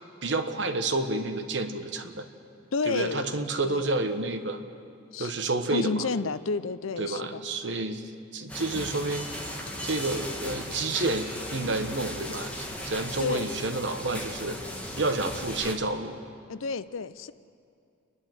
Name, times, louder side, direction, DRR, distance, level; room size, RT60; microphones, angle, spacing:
voice 1, 0.2-2.2 2.9-4.6 5.2-6.1 7.0-8.0 8.3-9.3 9.8-14.6 15.0-16.2, right 2 dB, 65° right, 7 dB, 1.3 m, -29 dB
voice 2, 2.7-4.0 5.1-5.3 5.7-7.4 13.2-13.5 16.5-17.3, left 4 dB, 90° left, 15 dB, 0.6 m, -31 dB
sound 1, 8.5-15.8, left 1 dB, 5° left, 1.7 m, -37 dB
29.5 x 11.0 x 7.9 m, 2.4 s
head